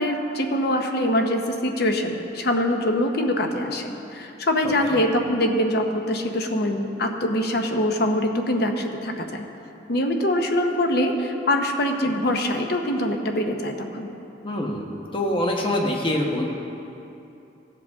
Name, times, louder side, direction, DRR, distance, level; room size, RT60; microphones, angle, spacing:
voice 1, 0.0-9.4 9.9-14.1, left 1 dB, 60° left, 4 dB, 0.9 m, -24 dB
voice 2, 14.4-16.5, left 1 dB, 30° left, 0 dB, 1.2 m, -25 dB
16.0 x 7.7 x 3.6 m, 2.8 s
head